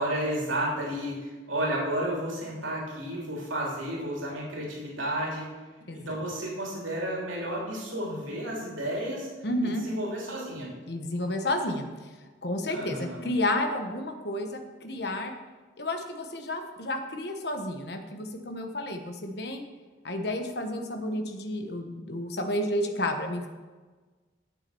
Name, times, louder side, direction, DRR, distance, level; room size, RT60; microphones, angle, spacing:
voice 1, 0.0-5.5 6.0-9.3 9.6-10.7 12.7-13.2, right 1 dB, 90° right, -3 dB, 3.1 m, -32 dB
voice 2, 9.4-9.9 10.9-11.9 12.4-15.3 15.8-19.6 20.0-23.5, left 1 dB, 55° left, 5 dB, 1.1 m, -31 dB
9.3 x 7.5 x 6.9 m, 1.3 s
head